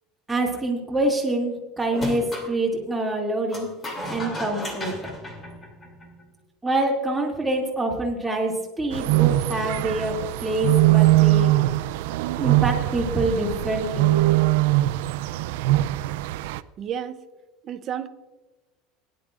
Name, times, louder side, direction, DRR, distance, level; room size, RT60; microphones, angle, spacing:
voice 1, 0.3-3.7 4.0-4.9 6.6-10.1 10.4-11.5 12.4-14.1, right 1 dB, 5° right, -2 dB, 2.5 m, -26 dB
sound 1, 1.9-2.5 3.5-6.2, left 1 dB, 20° left, 2.9 m, -34 dB
sound 2, 8.9-16.6, right 18 dB, 85° right, 0.4 m, -21 dB
voice 2, 16.8-17.2 17.6-18.1, right 9 dB, 35° right, 10 dB, 0.7 m, -31 dB
19.5 x 11.0 x 2.5 m, 1.1 s
cardioid pair, 150°, 0 cm